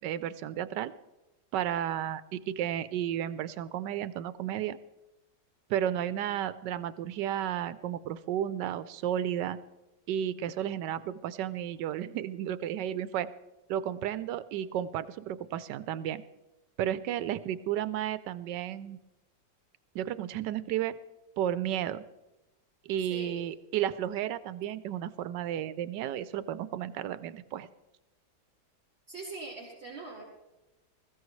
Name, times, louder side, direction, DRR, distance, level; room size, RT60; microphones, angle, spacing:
voice 1, 0.0-0.9 1.5-4.8 5.7-9.6 10.1-13.3 13.7-16.2 16.8-19.0 19.9-21.0 21.4-22.0 22.9-27.7, right 11 dB, 85° right, 14 dB, 1.3 m, -33 dB
voice 2, 23.0-23.4 29.1-30.2, right 3 dB, 35° right, -7 dB, 4.4 m, -42 dB
21.0 x 14.5 x 3.2 m, 1.0 s
omnidirectional pair, 1.8 m